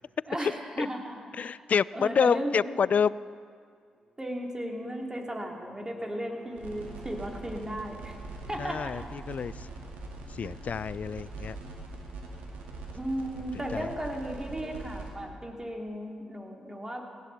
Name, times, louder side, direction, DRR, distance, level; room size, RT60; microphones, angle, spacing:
voice 1, 0.3-1.5 1.9-2.5 4.2-8.2 8.5-9.0 10.4-10.5 12.9-17.0, right 1 dB, 20° right, 0 dB, 2.9 m, -35 dB
voice 2, 1.3-3.3 8.6-9.7 10.3-11.6 13.7-13.9, left 6 dB, 55° left, 20 dB, 0.3 m, -28 dB
Bowed string instrument, 4.0-7.8, left 2 dB, 5° left, 1.6 m, -54 dB
sound 1, 6.6-15.1, right 3 dB, 80° right, 2.0 m, -42 dB
18.0 x 14.5 x 4.1 m, 2.2 s
hypercardioid pair, 45°, 3 cm